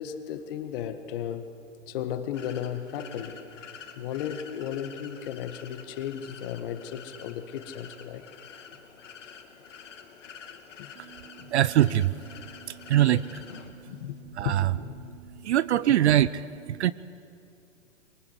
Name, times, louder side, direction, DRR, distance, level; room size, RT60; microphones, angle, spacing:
voice 1, 0.0-1.5 1.9-3.5 4.0-8.2 10.8-10.9 11.4-11.5 13.8-14.2 14.4-15.0, left 9 dB, 45° left, 9 dB, 1.8 m, -35 dB
sound 1, 2.3-13.7, left 7 dB, 70° left, 2.7 m, -47 dB
voice 2, 11.0-14.1 14.3-14.7 15.0-16.9, right 12 dB, 60° right, 17 dB, 0.6 m, -25 dB
23.0 x 21.0 x 8.2 m, 2.6 s
hypercardioid pair, 125°, 39 cm